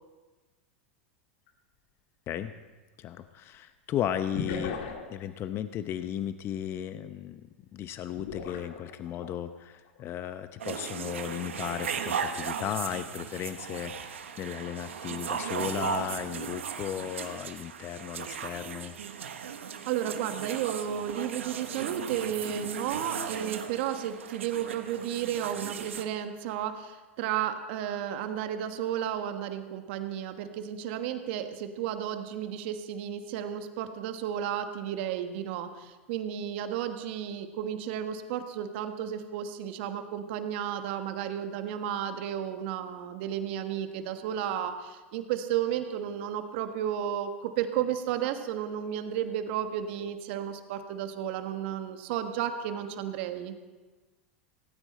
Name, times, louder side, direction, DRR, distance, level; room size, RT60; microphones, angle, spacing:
sound 1, 1.5-1.6 4.4-5.2 8.2-9.3 9.9-10.1, left 5 dB, 65° left, 2.1 m, -37 dB
voice 1, 3.0-7.5 7.7-18.9, left 10 dB, 40° left, 10 dB, 0.7 m, -35 dB
sound 2, 10.6-26.0, right 7 dB, 90° right, 1.2 m, -37 dB
voice 2, 19.8-53.5, right 10 dB, 65° right, 7 dB, 1.4 m, -33 dB
17.5 x 15.0 x 4.3 m, 1.3 s
hypercardioid pair, 105°, 7 cm